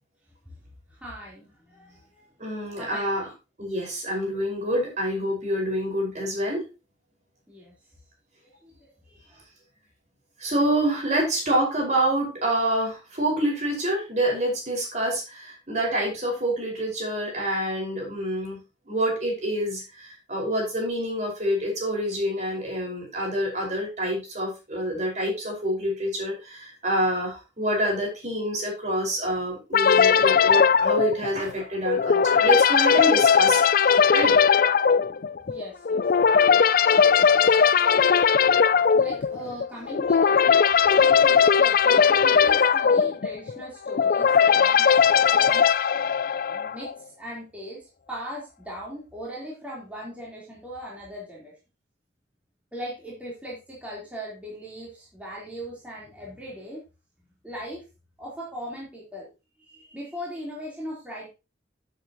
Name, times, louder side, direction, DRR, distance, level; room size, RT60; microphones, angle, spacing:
voice 1, 1.0-2.3 2.7-3.2 7.5-7.7 8.6-8.7 9.1-9.4 24.9-25.0 35.5-36.0 39.0-40.5 41.0-45.0 45.3-45.7 46.5-46.9 47.2-47.8 48.1-51.5 52.7-56.8 57.4-57.8 58.2-59.3 59.6-61.3, equal, 10° right, -5 dB, 3.8 m, -39 dB
voice 2, 2.4-3.3 3.6-6.6 10.4-18.6 18.9-34.4, right 1 dB, 40° right, 0 dB, 5.2 m, -27 dB
sound 1, 29.7-46.9, left 6 dB, 50° left, 0.4 m, -19 dB
12.0 x 7.8 x 3.0 m, 0.28 s
head